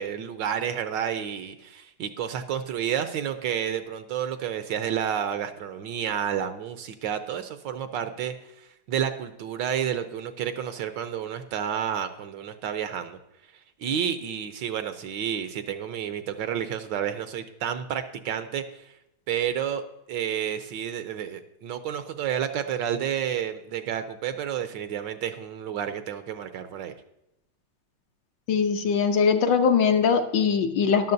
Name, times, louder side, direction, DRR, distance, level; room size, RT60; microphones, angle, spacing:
voice 1, 0.0-13.2 13.8-18.9 19.3-26.9, right 9 dB, 70° right, 9 dB, 1.2 m, -30 dB
voice 2, 28.5-31.1, left 6 dB, 65° left, 6 dB, 1.3 m, -21 dB
13.5 x 11.0 x 2.6 m, 0.87 s
omnidirectional pair, 2.3 m